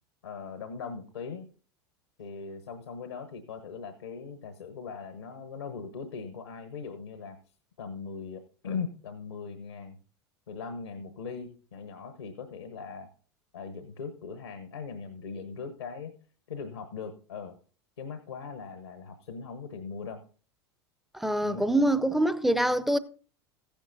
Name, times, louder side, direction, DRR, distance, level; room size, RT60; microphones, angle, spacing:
voice 1, 0.2-1.5 2.2-7.4 7.8-10.0 10.5-13.1 13.5-16.1 16.5-17.6 18.0-20.2 21.4-21.7, left 5 dB, 75° left, 1.1 m, -40 dB
voice 2, 21.1-23.0, right 1 dB, ahead, 0.6 m, -25 dB
15.0 x 10.0 x 2.6 m
figure-of-eight pair, 80°, 14 cm